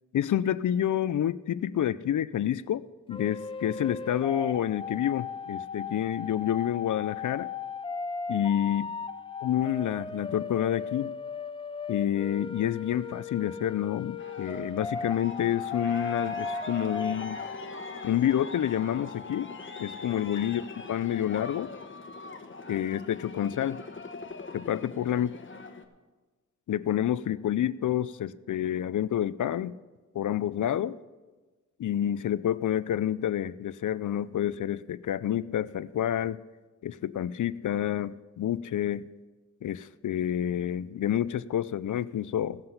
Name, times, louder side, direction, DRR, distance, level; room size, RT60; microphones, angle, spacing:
voice 1, 0.1-7.5 8.3-8.9 9.4-11.1 11.9-17.4 18.0-19.5 19.8-20.6 20.9-21.7 22.7-23.8 24.5-25.3 26.7-29.8 30.1-31.0 31.8-36.4 36.8-39.1 39.6-42.6, left 11 dB, 80° left, 18 dB, 0.4 m, -28 dB
sound 1, 3.1-17.5, left 4 dB, 20° left, 0.5 m, -37 dB
Aircraft, 14.2-25.8, left 3 dB, 40° left, 1.1 m, -42 dB
16.5 x 7.7 x 5.6 m, 1.3 s
wide cardioid pair, 100°, 30 cm